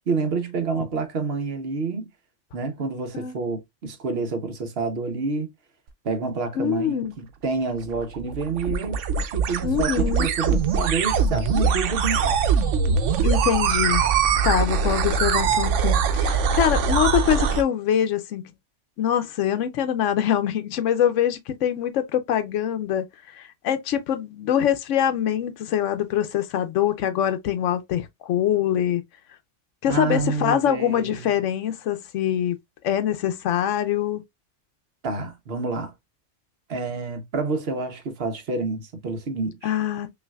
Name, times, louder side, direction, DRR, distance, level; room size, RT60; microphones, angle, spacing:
voice 1, 0.1-2.1 2.5-5.5 6.0-12.4 29.9-31.4 35.0-35.9 36.7-39.8, right 4 dB, 60° right, 1.1 m, -28 dB
voice 2, 6.6-7.1 9.6-10.3 13.2-14.0 14.4-18.5 19.0-29.0 29.8-32.6 32.8-34.2 39.6-40.1, left 10 dB, 90° left, 0.9 m, -24 dB
sound 1, 7.8-17.6, right 6 dB, 85° right, 1.0 m, -22 dB
5.5 x 2.6 x 2.3 m
omnidirectional pair, 1.2 m